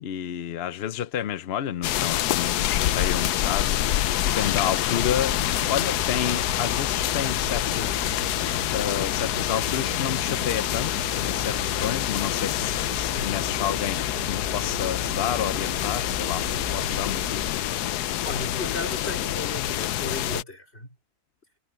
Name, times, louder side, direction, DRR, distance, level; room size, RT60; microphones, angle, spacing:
voice 1, 0.0-8.2 8.7-17.7, left 9 dB, 60° left, 0.7 m, -30 dB
sound 1, 1.8-20.4, left 13 dB, 85° left, 1.2 m, -26 dB
sound 2, 5.3-17.5, right 3 dB, 60° right, 2.0 m, -38 dB
voice 2, 16.7-17.0 18.2-20.9, left 2 dB, 40° left, 4.8 m, -35 dB
omnidirectional pair, 1.6 m